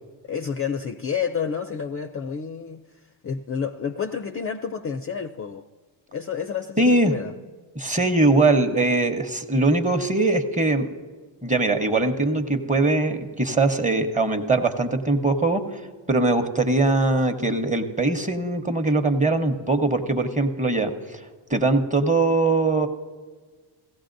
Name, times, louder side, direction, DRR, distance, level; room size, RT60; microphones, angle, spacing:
voice 1, 0.3-2.8 3.2-5.7 6.1-7.3, left 6 dB, 30° left, 0.4 m, -29 dB
voice 2, 6.8-7.1 7.8-10.9 11.4-15.6 16.1-21.2 21.5-22.9, right 2 dB, 15° right, 0.9 m, -21 dB
16.5 x 15.0 x 2.6 m
cardioid pair, 75°, 49 cm